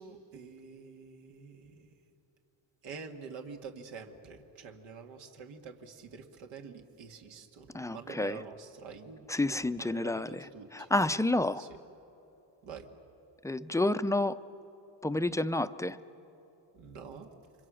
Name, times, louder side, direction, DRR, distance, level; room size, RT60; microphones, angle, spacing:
voice 1, 0.0-1.9 2.8-10.9 11.6-11.7 12.6-12.9 16.7-17.3, right 5 dB, 85° right, 3 dB, 2.1 m, -47 dB
voice 2, 7.7-8.4 9.3-11.7 13.4-14.4 15.0-16.0, left 2 dB, 5° left, 12 dB, 0.5 m, -30 dB
29.5 x 25.0 x 6.3 m, 3.0 s
cardioid pair, 110°, 44 cm